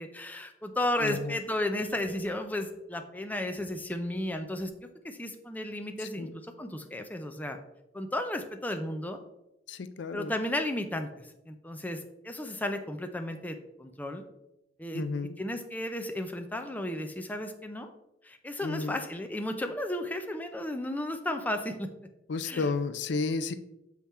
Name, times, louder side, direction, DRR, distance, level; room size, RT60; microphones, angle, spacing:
voice 1, 0.0-4.7 5.0-7.6 7.9-9.2 10.1-14.2 14.8-15.0 15.4-17.9 18.2-21.9 22.4-22.7, left 1 dB, 10° left, 5 dB, 0.5 m, -34 dB
voice 2, 1.0-1.4 6.0-6.3 9.7-10.3 14.9-15.4 18.6-19.0 22.3-23.5, left 4 dB, 70° left, 11 dB, 0.4 m, -32 dB
7.3 x 3.6 x 4.2 m, 0.87 s
head